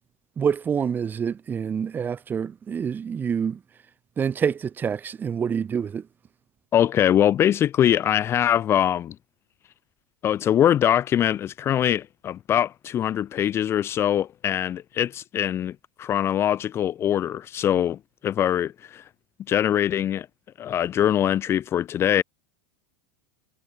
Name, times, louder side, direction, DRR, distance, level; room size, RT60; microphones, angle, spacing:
voice 1, 0.4-3.6 4.2-6.0, right 7 dB, 25° right, 2.4 m, -27 dB
voice 2, 6.7-9.1 10.2-19.0 19.5-20.3 20.6-22.2, left 10 dB, 35° left, 1.3 m, -23 dB
hypercardioid pair, 95°, 8 cm